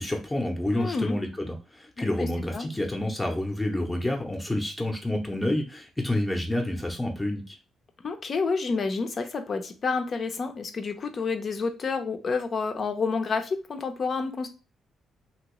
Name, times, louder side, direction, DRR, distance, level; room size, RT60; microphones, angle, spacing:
voice 1, 0.0-7.6, left 1 dB, 15° left, 1 dB, 0.8 m, -29 dB
voice 2, 0.7-1.2 2.2-2.7 8.0-14.5, left 4 dB, 45° left, 6 dB, 0.7 m, -29 dB
3.0 x 2.9 x 3.0 m, 0.32 s
cardioid pair, 90°, 0 cm